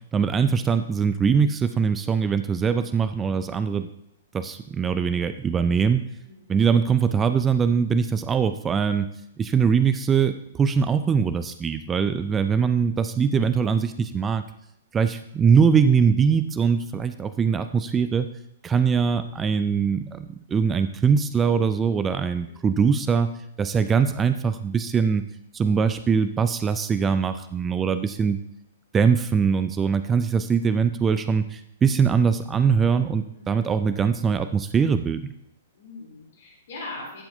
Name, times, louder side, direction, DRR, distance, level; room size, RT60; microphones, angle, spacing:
voice 1, 0.1-3.9 4.3-6.0 6.5-9.1 9.4-14.4 14.9-18.3 18.6-23.3 23.6-25.2 25.5-28.4 28.9-35.3, right 6 dB, 15° right, 11 dB, 0.4 m, -22 dB
voice 2, 6.2-6.6 22.5-22.6 33.3-33.6 35.7-37.2, left 2 dB, 55° left, -2 dB, 3.1 m, -40 dB
11.0 x 7.1 x 2.6 m, 0.78 s
figure-of-eight pair, 110°, 0 cm